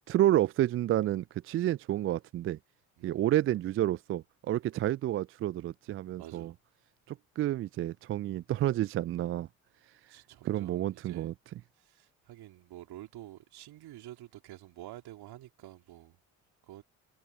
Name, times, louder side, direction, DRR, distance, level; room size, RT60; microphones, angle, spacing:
voice 1, 0.1-2.6 3.0-6.5 7.1-9.5 10.4-11.3, right 13 dB, 30° right, 0.4 m, -30 dB
voice 2, 6.2-6.5 10.1-11.3 11.8-16.2 16.7-16.8, right 14 dB, 60° right, 3.0 m, -49 dB
figure-of-eight pair, 50°, 44 cm